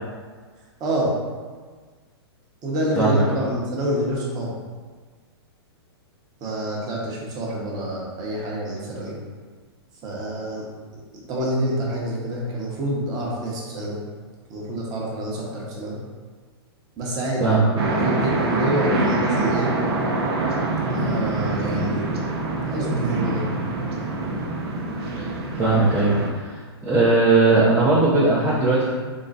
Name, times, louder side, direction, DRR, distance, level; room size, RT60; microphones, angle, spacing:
voice 1, 0.8-1.1 2.6-4.5 6.4-9.2 10.0-10.6 10.9-11.0 11.3-14.0 14.5-16.0 17.0-17.6 18.0-19.7 20.8-22.1 22.7-23.4, right 1 dB, 30° right, -4 dB, 1.0 m, -27 dB
voice 2, 2.9-3.5 17.4-17.7 25.2-29.0, right 3 dB, 10° right, -9 dB, 0.6 m, -19 dB
sound 1, 17.8-26.3, right 2 dB, 70° right, 0.8 m, -25 dB
3.9 x 2.2 x 4.0 m, 1.5 s
hypercardioid pair, 130°, 14 cm